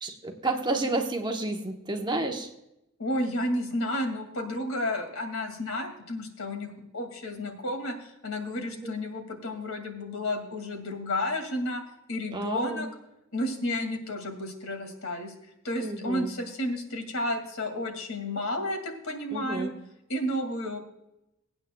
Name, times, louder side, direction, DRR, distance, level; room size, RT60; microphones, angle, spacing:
voice 1, 0.0-2.5 8.7-9.0 12.3-12.8 15.8-16.3 19.3-19.7, right 2 dB, 20° right, 3 dB, 1.0 m, -31 dB
voice 2, 3.0-11.8 12.1-12.9 13.3-15.3 15.6-19.7 20.1-20.8, left 1 dB, 75° left, 6 dB, 2.2 m, -31 dB
23.0 x 8.8 x 2.3 m, 0.87 s
head